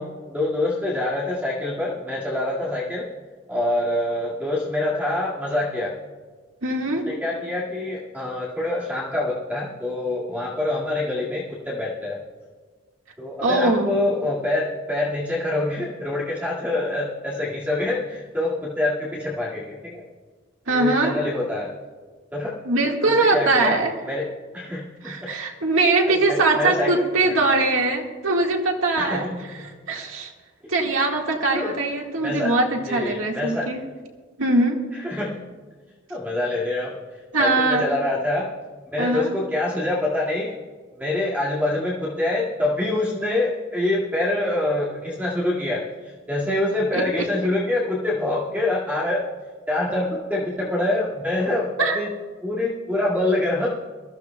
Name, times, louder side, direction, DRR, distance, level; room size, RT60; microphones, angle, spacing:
voice 1, 0.0-3.1 3.5-5.9 6.9-12.2 13.2-20.1 20.7-21.7 22.3-22.5 23.0-23.8 24.1-24.3 24.5-25.3 26.0-27.0 29.0-29.4 29.7-29.8 31.5-31.7 32.2-32.5 32.9-33.7 34.9-35.4 36.1-37.0 37.4-38.5 38.9-40.5 41.0-49.2 49.7-52.1 52.4-53.7, left 2 dB, 10° right, -7 dB, 2.1 m, -25 dB
voice 2, 6.6-7.1 13.4-13.9 20.7-21.2 22.7-23.9 25.0-29.3 29.9-30.3 30.7-33.8 34.4-34.8 37.3-37.9 39.0-39.3 46.9-47.0 51.8-52.0, right 2 dB, 85° right, 0 dB, 1.8 m, -21 dB
22.0 x 14.5 x 2.3 m, 1.4 s
head